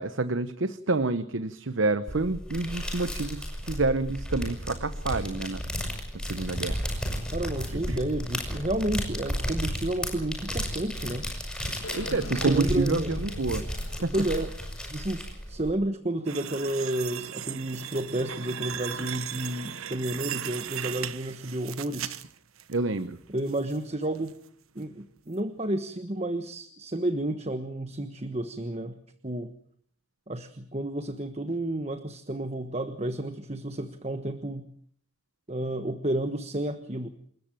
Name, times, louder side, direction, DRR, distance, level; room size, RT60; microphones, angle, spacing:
voice 1, 0.0-5.6 6.1-6.8 7.9-8.0 11.9-13.6 14.0-14.1 22.7-23.2, right 3 dB, 65° right, 13 dB, 0.9 m, -28 dB
sound 1, 2.1-15.7, equal, 5° left, 7.1 m, -33 dB
voice 2, 7.3-11.3 12.3-13.1 14.1-14.5 14.9-22.2 23.3-24.3 24.7-29.0 29.2-29.5 30.3-34.7 35.5-37.1, right 1 dB, 30° right, 9 dB, 1.3 m, -31 dB
sound 2, 11.8-15.9, left 1 dB, 90° left, 1.9 m, -41 dB
sound 3, 16.3-22.7 23.2-23.8 24.2-24.3 24.8-24.9, right 10 dB, 85° right, 1.2 m, -37 dB
28.5 x 13.5 x 9.1 m, 0.63 s
head